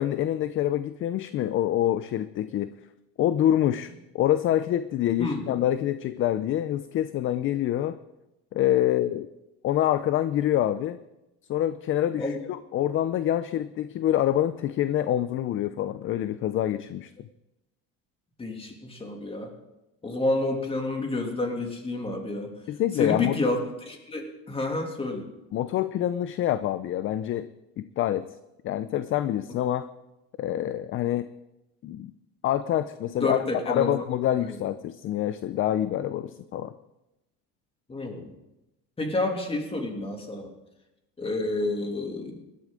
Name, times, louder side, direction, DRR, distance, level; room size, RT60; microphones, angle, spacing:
voice 1, 0.0-2.7 3.2-8.0 8.5-9.3 9.6-11.0 11.5-12.4 12.7-17.1 22.7-23.4 25.5-27.5 27.8-28.3 28.6-29.9 30.4-31.3 31.8-32.1 32.4-33.4 33.7-36.7, left 12 dB, 40° left, 13 dB, 0.5 m, -26 dB
voice 2, 5.2-5.5 12.2-12.4 18.4-19.5 20.0-22.5 22.9-25.3 33.2-33.9 34.4-34.6 37.9-38.3 39.0-40.5 41.2-42.4, left 2 dB, 20° left, 2 dB, 2.8 m, -29 dB
18.5 x 12.5 x 3.8 m, 0.95 s
supercardioid pair, 115°, 31 cm